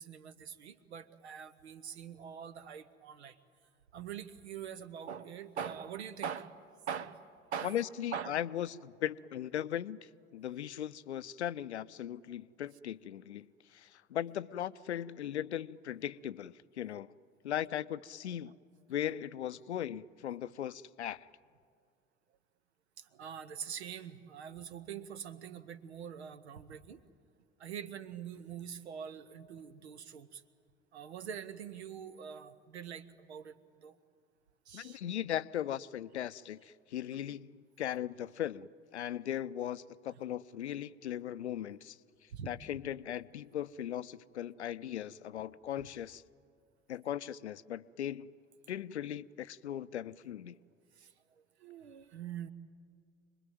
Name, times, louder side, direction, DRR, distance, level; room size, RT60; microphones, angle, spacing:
voice 1, 0.0-3.4 3.9-6.5 6.9-7.2 7.5-7.8 8.1-8.4 23.0-27.0 27.6-30.4 30.9-33.9 34.7-35.0 42.3-42.5 51.0-52.5, right 8 dB, 75° right, 1.0 m, -44 dB
voice 2, 7.6-13.5 13.7-17.1 17.4-18.6 18.9-21.3 34.7-42.0 42.5-46.2 46.9-48.3 48.7-50.6, left 11 dB, 80° left, 0.5 m, -38 dB
26.0 x 20.5 x 9.2 m
figure-of-eight pair, 60°, 33 cm